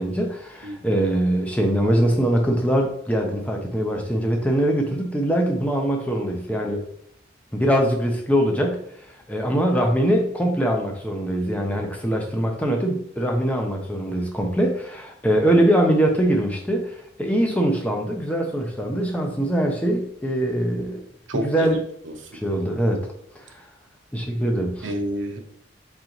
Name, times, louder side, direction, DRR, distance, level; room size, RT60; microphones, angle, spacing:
voice 1, 0.0-6.8 7.5-8.8 9.3-21.0 21.3-21.8 22.3-23.1 23.3-23.6 24.1-24.9, right 1 dB, 5° left, 1 dB, 0.6 m, -22 dB
voice 2, 21.3-21.7 22.0-22.4 24.8-25.4, equal, 70° right, 4 dB, 0.7 m, -29 dB
3.9 x 3.9 x 2.9 m, 0.68 s
head